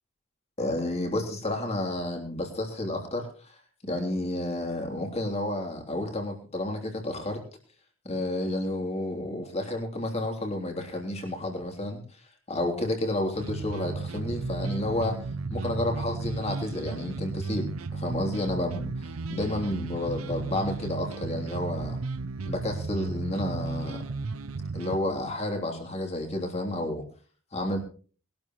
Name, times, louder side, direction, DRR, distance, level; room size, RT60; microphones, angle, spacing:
voice 1, 0.6-3.3 3.8-7.4 8.0-12.0 12.5-15.2 15.5-22.0 22.5-24.0 24.7-27.0 27.5-27.8, left 1 dB, 30° left, 3 dB, 3.3 m, -31 dB
sound 1, 13.3-25.0, right 3 dB, 90° right, 0.7 m, -34 dB
21.5 x 12.5 x 3.1 m, 0.38 s
head